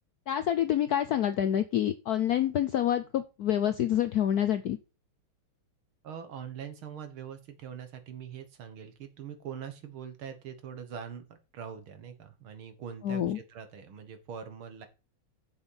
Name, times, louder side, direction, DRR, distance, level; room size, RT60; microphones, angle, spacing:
voice 1, 0.3-4.8 13.0-13.4, left 10 dB, 75° left, 11 dB, 0.9 m, -27 dB
voice 2, 6.0-14.9, right 8 dB, 75° right, 8 dB, 2.3 m, -43 dB
7.5 x 7.1 x 5.5 m, 0.30 s
omnidirectional pair, 2.3 m